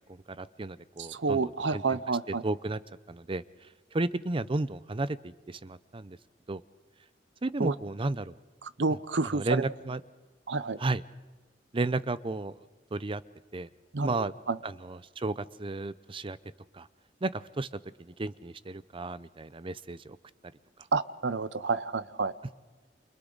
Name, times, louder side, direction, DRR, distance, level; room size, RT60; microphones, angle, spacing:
voice 1, 0.4-1.4 1.7-2.0 2.4-2.8 3.1-3.4 3.9-6.2 6.5-6.6 7.4-8.4 9.2-10.0 10.8-11.0 11.7-12.5 12.9-13.2 13.5-13.7 14.0-14.3 14.6-16.4 16.7-16.9 17.2-17.7 18.0-20.2, right 2 dB, 30° right, 16 dB, 0.6 m, -33 dB
voice 2, 1.0-2.4 7.6-7.7 8.6-9.7 10.5-10.8 13.9-14.2 14.5-14.6 20.9-22.3, right 4 dB, 80° right, 15 dB, 0.8 m, -29 dB
29.0 x 28.5 x 4.0 m, 1.3 s
head